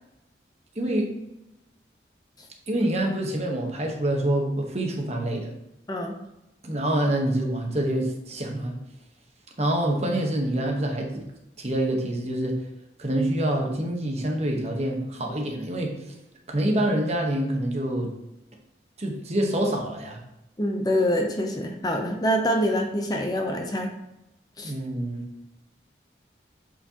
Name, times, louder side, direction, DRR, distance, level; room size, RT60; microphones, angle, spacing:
voice 1, 0.7-1.1 2.7-5.5 6.6-8.8 9.6-11.1 11.6-12.6 13.0-15.9 16.5-18.1 19.0-20.2 24.6-25.2, right 1 dB, 35° right, 1 dB, 1.0 m, -26 dB
voice 2, 20.6-23.9 24.6-24.7, equal, 20° left, 3 dB, 0.6 m, -25 dB
8.3 x 4.4 x 2.8 m, 0.89 s
head